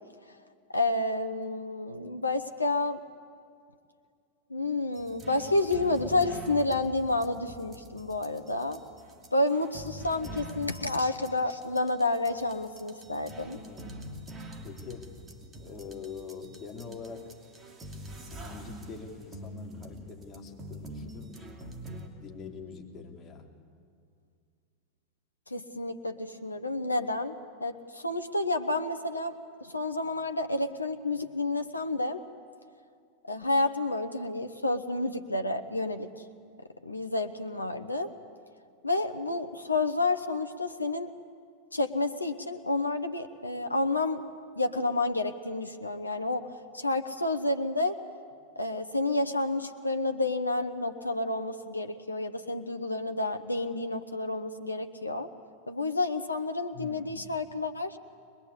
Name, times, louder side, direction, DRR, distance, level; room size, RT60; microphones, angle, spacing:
voice 1, 0.7-3.0 4.5-8.8 9.3-13.6 25.5-27.3 27.6-29.3 29.6-32.2 33.3-36.1 36.8-38.1 38.8-41.1 41.7-44.2 44.6-46.5 46.7-48.0 48.6-55.3 55.7-58.0, left 2 dB, 80° left, 7 dB, 0.9 m, -30 dB
voice 2, 4.6-4.9 9.2-9.3 13.5-14.1 14.6-15.1 15.6-17.3 18.4-21.7 22.2-23.5 56.7-57.3, left 5 dB, 25° left, 0 dB, 3.3 m, -44 dB
sound 1, 4.9-22.1, equal, 20° right, 2.7 m, -45 dB
23.0 x 21.0 x 8.5 m, 2.3 s
figure-of-eight pair, 90°, 0 cm